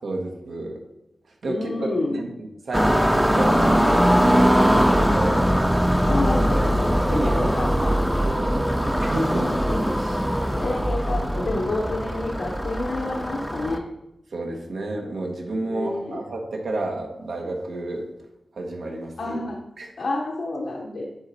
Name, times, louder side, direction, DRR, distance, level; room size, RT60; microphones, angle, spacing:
voice 1, 0.0-0.8 1.4-5.5 6.3-6.7 7.1-9.5 10.0-10.2 14.3-18.1 18.6-19.4 19.8-19.9, right 2 dB, 80° right, 0 dB, 1.2 m, -31 dB
voice 2, 1.5-2.2 6.0-8.0 9.3-13.8 15.7-16.2 19.2-19.6 20.0-21.0, left 2 dB, 75° left, -2 dB, 0.9 m, -29 dB
sound 1, 2.7-13.8, equal, 5° right, 0.6 m, -21 dB
10.5 x 4.0 x 4.2 m, 0.90 s
wide cardioid pair, 95°, 0 cm